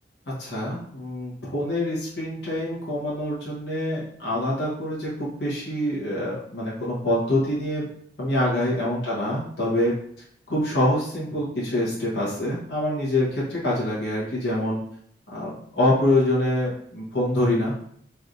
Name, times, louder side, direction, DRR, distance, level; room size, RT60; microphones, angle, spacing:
voice 1, 0.4-7.9 8.2-9.9 10.5-14.8 15.3-17.7, left 1 dB, 65° left, -7 dB, 1.1 m, -25 dB
3.2 x 2.8 x 2.5 m, 0.65 s
head